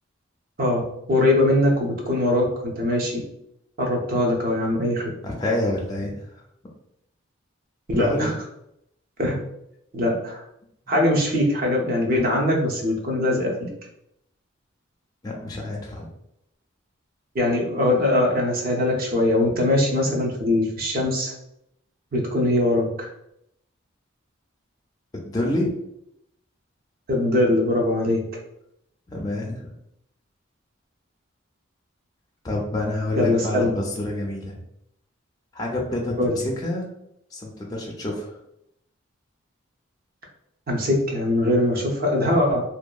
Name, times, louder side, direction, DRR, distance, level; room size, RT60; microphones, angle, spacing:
voice 1, 1.1-3.2 3.8-5.1 7.9-8.3 9.2-9.4 9.9-10.4 10.9-13.7 17.3-21.3 22.1-23.1 27.1-28.2 33.2-33.7 36.2-36.4 40.7-42.6, left 1 dB, 45° right, 0 dB, 0.6 m, -21 dB
voice 2, 5.2-6.4 8.0-8.3 10.9-11.0 15.2-16.1 25.1-25.7 29.1-29.7 32.4-34.6 35.5-36.9 37.3-38.3, left 1 dB, 20° left, -2 dB, 0.4 m, -28 dB
2.7 x 2.2 x 2.3 m, 0.79 s
head